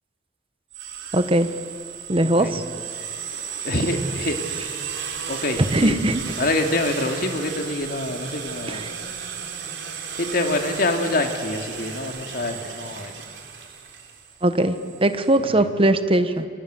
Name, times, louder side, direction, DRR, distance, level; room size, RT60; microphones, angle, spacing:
sound 1, 0.7-15.4, right 7 dB, 85° right, 4.1 m, -34 dB
voice 1, 1.1-1.5 2.1-2.6 5.7-6.2 8.7-8.8 14.4-14.7 15.0-16.5, right 1 dB, 30° right, 10 dB, 1.3 m, -20 dB
voice 2, 2.2-2.6 3.6-4.8 5.3-6.0 6.4-8.8 10.2-13.1 15.4-15.7, left 2 dB, 55° left, 4 dB, 2.6 m, -26 dB
29.5 x 24.5 x 7.9 m, 2.5 s
head